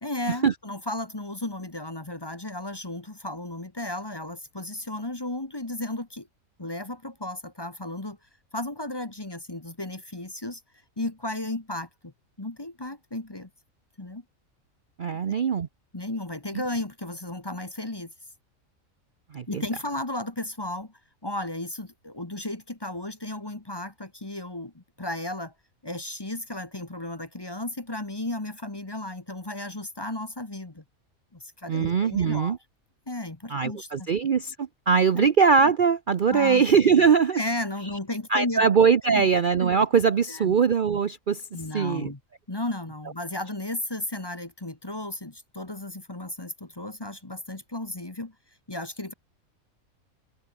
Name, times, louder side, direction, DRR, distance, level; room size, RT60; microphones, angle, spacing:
voice 1, 0.0-6.3 6.6-8.2 8.5-10.6 11.0-13.5 14.0-14.2 15.1-15.4 15.9-18.1 19.5-20.9 21.2-25.5 25.8-30.8 31.3-32.6 33.1-34.1 35.1-35.3 36.3-36.6 37.3-38.7 39.0-39.3 40.3-40.5 41.5-42.2 42.5-48.3 48.7-49.1, left 1 dB, 20° left, 1.4 m, -34 dB
voice 2, 15.0-15.7 19.3-19.6 31.7-32.6 33.5-37.4 38.3-41.4 41.7-42.1, right 6 dB, 45° right, 0.8 m, -21 dB
open air
omnidirectional pair, 1.4 m